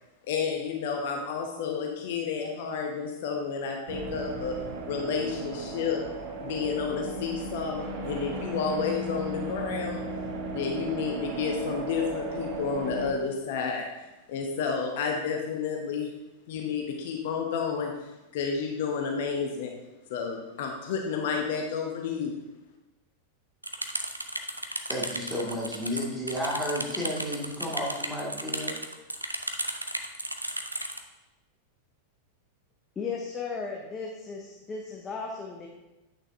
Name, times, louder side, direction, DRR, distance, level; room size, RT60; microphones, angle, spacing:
voice 1, 0.3-4.5 4.9-6.0 6.4-10.0 10.5-13.8 14.3-16.1 16.5-17.9 18.3-19.7 20.1-22.3, left 5 dB, 55° left, 2 dB, 0.8 m, -31 dB
sound 1, 3.9-13.1, right 2 dB, 45° right, 1.1 m, -35 dB
sound 2, 23.6-31.0, right 1 dB, 85° right, 0.5 m, -34 dB
voice 2, 24.9-28.8, equal, ahead, -5 dB, 2.1 m, -32 dB
voice 3, 33.0-35.7, left 5 dB, 20° left, 0 dB, 0.8 m, -35 dB
8.6 x 6.2 x 2.7 m, 1.0 s
figure-of-eight pair, 90°, 0 cm